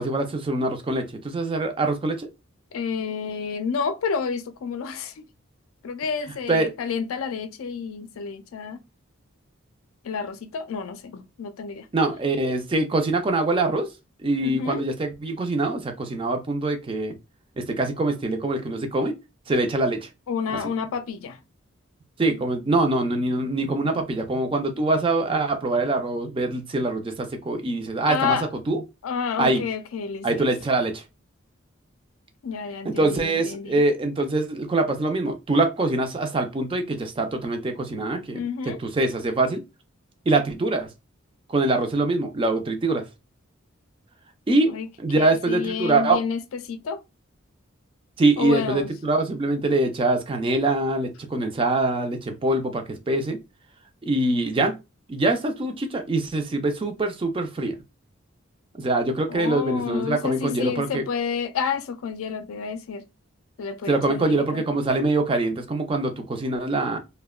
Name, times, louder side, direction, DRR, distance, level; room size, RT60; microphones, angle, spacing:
voice 1, 0.0-2.3 6.5-6.7 11.9-13.9 14.2-17.2 17.6-19.1 19.5-20.1 22.2-28.4 28.7-28.8 29.4-29.6 30.2-31.0 32.8-39.6 40.3-40.9 41.5-43.0 44.5-46.2 48.2-53.4 54.0-54.8 55.1-57.7 58.8-61.0 63.9-67.0, right 2 dB, 25° right, 0.4 m, -24 dB
voice 2, 2.7-5.2 5.8-8.8 10.0-11.9 14.4-14.8 20.3-21.4 28.1-28.5 29.0-30.5 32.4-33.8 38.3-38.8 44.7-44.9 45.1-47.0 48.4-48.9 59.3-63.0 63.6-64.6, left 6 dB, 80° left, 0.4 m, -30 dB
2.7 x 2.1 x 2.2 m
head